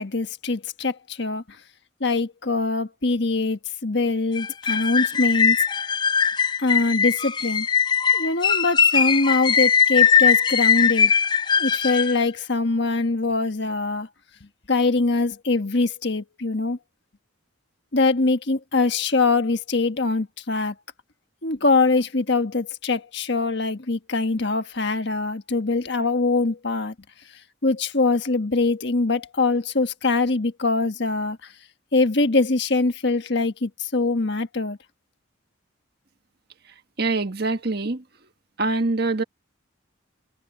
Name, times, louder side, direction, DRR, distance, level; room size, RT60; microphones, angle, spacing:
voice 1, 0.0-1.4 2.0-5.6 6.6-7.7 8.1-11.1 11.6-14.1 14.7-16.8 17.9-20.7 21.4-26.9 27.6-31.5 31.9-34.8, left 3 dB, 55° left, 1.5 m, -23 dB
sound 1, 4.4-12.2, left 7 dB, 20° left, 0.4 m, -20 dB
voice 2, 37.0-38.0 38.6-39.2, right 3 dB, 50° right, 1.5 m, -24 dB
head